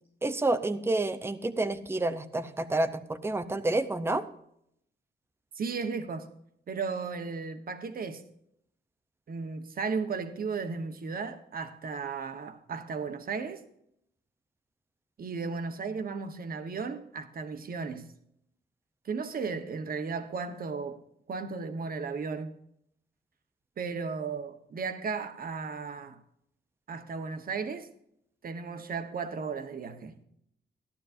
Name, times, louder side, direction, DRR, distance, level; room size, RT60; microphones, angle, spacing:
voice 1, 0.2-4.2, right 2 dB, 10° right, 0.6 m, -29 dB
voice 2, 5.5-6.3 6.7-8.2 9.3-13.6 15.2-18.1 19.0-21.0 21.3-22.6 23.8-26.2 26.9-27.9 28.4-30.2, right 5 dB, 50° right, 1.2 m, -35 dB
14.5 x 12.0 x 2.6 m
wide cardioid pair, 140°, 19 cm